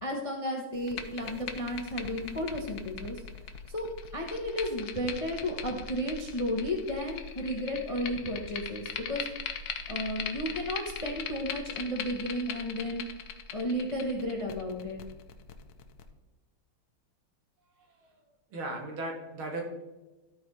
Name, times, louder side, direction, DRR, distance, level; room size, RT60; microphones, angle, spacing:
voice 1, 0.0-3.2 3.7-9.3 9.9-13.0 13.5-15.0, equal, 25° left, 0 dB, 0.7 m, -33 dB
sound 1, 0.7-16.0, left 7 dB, 70° left, 1.5 m, -40 dB
voice 2, 18.5-19.6, right 2 dB, 75° right, 1 dB, 2.6 m, -36 dB
13.0 x 4.7 x 4.1 m, 1.1 s
omnidirectional pair, 2.3 m